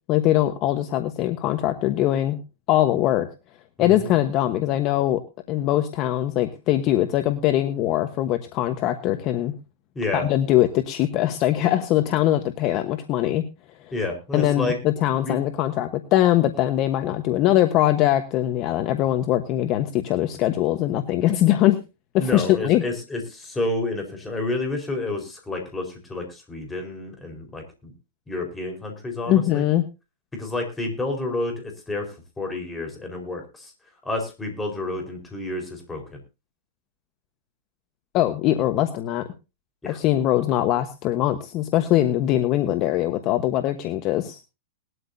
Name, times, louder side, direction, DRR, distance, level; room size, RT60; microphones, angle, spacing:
voice 1, 0.1-2.4 2.7-3.3 3.8-5.2 5.5-9.5 10.1-13.4 14.3-21.8 22.1-22.8 29.3-29.8 38.1-39.2 39.8-44.4, left 13 dB, 30° left, 9 dB, 1.1 m, -22 dB
voice 2, 3.8-4.1 9.9-10.3 13.9-14.8 15.2-15.4 22.2-27.9 28.3-29.6 30.3-32.1 32.4-33.7 34.0-36.0 39.8-40.0, left 2 dB, 10° left, 2 dB, 4.5 m, -29 dB
19.5 x 12.5 x 2.7 m, 0.29 s
hypercardioid pair, 155°, 0 cm